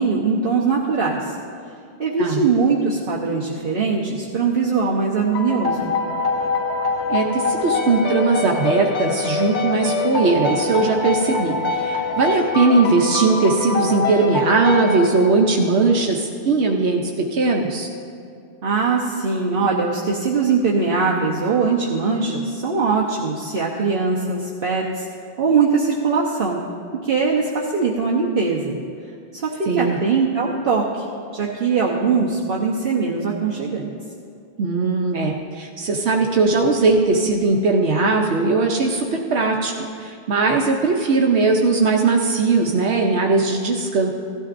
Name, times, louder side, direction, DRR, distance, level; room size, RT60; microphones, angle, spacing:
voice 1, 0.0-1.3 2.0-5.9 18.6-25.1 25.4-26.6 27.0-28.8 29.3-31.0 31.3-33.9, right 4 dB, 55° right, -3 dB, 1.1 m, -21 dB
sound 1, 5.3-15.7, left 3 dB, 80° left, 1.1 m, -24 dB
voice 2, 7.1-17.9 29.7-30.0 34.6-44.1, right 3 dB, 80° right, 1 dB, 1.1 m, -19 dB
16.5 x 12.5 x 2.6 m, 2.4 s
omnidirectional pair, 1.1 m